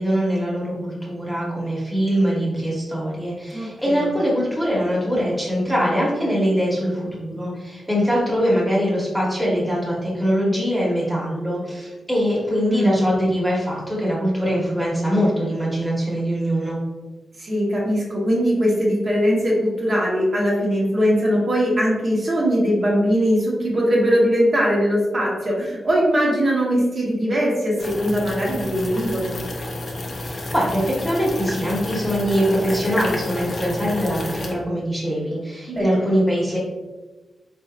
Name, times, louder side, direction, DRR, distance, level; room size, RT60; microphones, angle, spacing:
voice 1, 0.0-16.8 30.2-36.6, equal, 5° left, -5 dB, 1.2 m, -22 dB
voice 2, 3.5-4.1 12.7-13.1 17.4-29.4 35.7-36.1, equal, 40° right, -5 dB, 1.2 m, -21 dB
sound 1, 27.8-34.5, left 1 dB, 45° left, 0.6 m, -30 dB
4.6 x 4.3 x 2.5 m, 1.2 s
wide cardioid pair, 170°, 0 cm